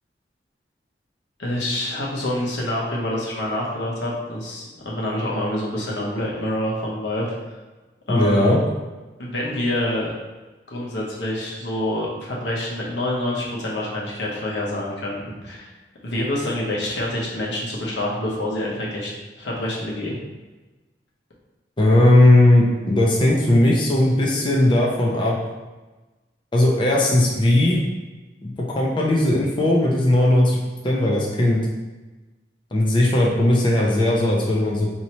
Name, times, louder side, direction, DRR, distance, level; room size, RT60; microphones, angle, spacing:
voice 1, 1.4-7.3 8.1-8.5 9.2-10.1 10.7-15.7 16.0-19.1 19.4-20.2, left 1 dB, 85° left, -4 dB, 1.0 m, -26 dB
voice 2, 8.1-8.6 21.8-25.4 26.5-27.8 28.4-30.6 30.8-31.6 32.7-34.9, left 1 dB, 30° left, -4 dB, 0.5 m, -17 dB
4.4 x 2.8 x 3.0 m, 1.2 s
head